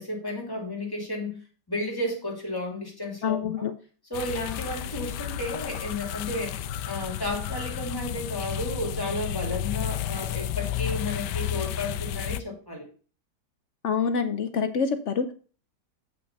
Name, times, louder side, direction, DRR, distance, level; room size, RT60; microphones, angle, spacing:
voice 1, 0.0-1.4 1.7-3.7 4.1-12.9, left 1 dB, 15° left, -1 dB, 2.8 m, -33 dB
voice 2, 3.2-3.7 13.8-15.3, left 6 dB, 60° left, 9 dB, 0.8 m, -26 dB
sound 1, 4.1-12.4, left 11 dB, 85° left, 1.2 m, -32 dB
8.0 x 5.5 x 5.3 m, 0.38 s
omnidirectional pair, 1.8 m